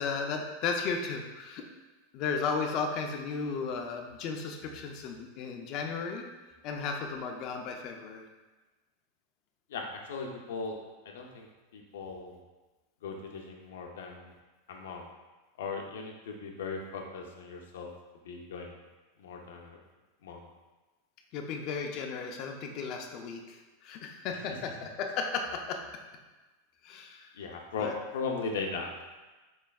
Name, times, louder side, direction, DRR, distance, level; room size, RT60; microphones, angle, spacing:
voice 1, 0.0-1.6 2.1-6.2 6.6-8.2 21.3-25.8 26.8-27.3 27.8-27.9, left 5 dB, 35° left, 3 dB, 0.4 m, -34 dB
voice 2, 9.7-10.8 11.0-12.4 13.0-14.3 14.7-15.1 15.6-17.9 18.2-18.8 19.2-19.8 20.2-20.5 24.3-24.6 27.3-29.0, left 4 dB, 90° left, 1 dB, 0.5 m, -38 dB
4.3 x 3.2 x 2.3 m, 1.2 s
supercardioid pair, 165°, 0 cm